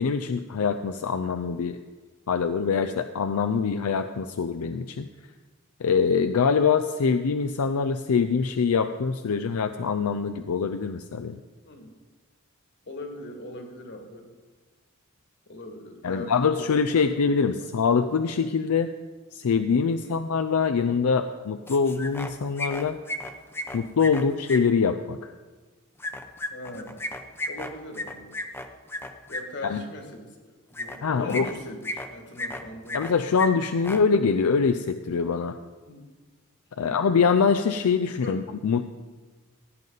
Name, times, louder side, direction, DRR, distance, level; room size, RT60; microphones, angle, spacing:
voice 1, 0.0-1.8 2.3-5.1 5.8-11.4 16.0-18.9 19.3-23.0 23.7-25.3 29.6-29.8 31.0-31.5 32.9-35.6 36.8-38.8, left 5 dB, 85° left, 9 dB, 0.5 m, -24 dB
voice 2, 12.9-14.3 15.5-17.7 19.9-20.2 26.5-27.0 27.5-28.4 29.3-31.8 32.1-33.1 35.8-36.0 36.8-37.1 38.1-38.4, left 1 dB, 55° left, 3 dB, 1.9 m, -41 dB
sound 1, 21.7-22.3 22.6-24.6 26.0-29.4 30.7-31.0 31.3-32.1 32.4-33.1 33.4-33.5 33.8-34.0, left 1 dB, 10° left, 0.6 m, -33 dB
17.0 x 9.2 x 4.0 m, 1.3 s
head